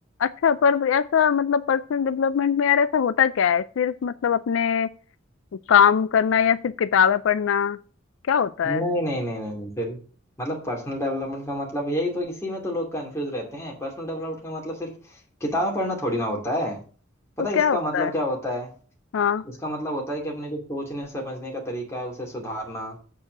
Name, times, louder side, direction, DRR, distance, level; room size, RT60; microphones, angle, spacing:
voice 1, 0.2-4.9 5.7-7.8 8.3-8.8 17.6-18.1 19.1-19.4, left 7 dB, 75° left, 14 dB, 0.4 m, -21 dB
voice 2, 8.6-10.0 10.4-16.8 17.4-18.7 19.4-23.0, equal, 15° left, -2 dB, 2.6 m, -29 dB
7.4 x 4.7 x 6.4 m, 0.39 s
head